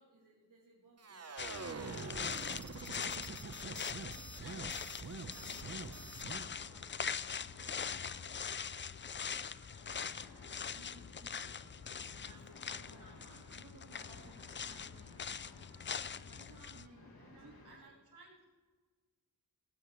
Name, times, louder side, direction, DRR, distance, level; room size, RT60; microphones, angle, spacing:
voice 1, 0.0-2.1 3.5-10.1 10.7-12.0 12.3-15.2 16.2-18.0, right 2 dB, 55° right, -4 dB, 2.4 m, -62 dB
sound 1, 1.0-6.5, right 3 dB, 40° right, 1.0 m, -45 dB
sound 2, 1.4-16.9, left 7 dB, 30° left, 0.4 m, -43 dB
voice 2, 3.7-4.6 17.2-18.5, right 3 dB, 75° right, -2 dB, 4.9 m, -59 dB
sound 3, 4.7-17.8, left 2 dB, 70° left, 2.5 m, -58 dB
17.5 x 15.5 x 3.3 m, 1.4 s
wide cardioid pair, 95°, 38 cm